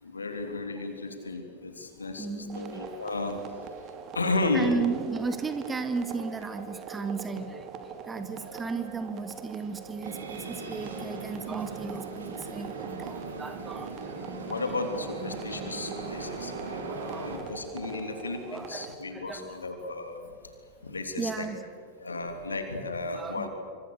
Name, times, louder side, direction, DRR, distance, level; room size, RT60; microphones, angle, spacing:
voice 1, 0.0-3.4 4.1-4.8 8.2-8.4 14.5-20.3 20.8-21.5 22.0-23.5, left 3 dB, 75° left, 6 dB, 3.3 m, -33 dB
voice 2, 2.2-2.8 4.5-7.7 8.1-13.9 14.2-14.4 16.8-17.4 18.5-19.6 21.2-21.6 23.1-23.5, right 4 dB, 15° right, 9 dB, 2.1 m, -35 dB
sound 1, 2.5-18.9, right 6 dB, 35° right, 2.8 m, -43 dB
sound 2, 10.0-17.4, right 3 dB, 70° right, 4.2 m, -39 dB
27.0 x 25.5 x 6.7 m, 2.2 s
figure-of-eight pair, 90°, 0 cm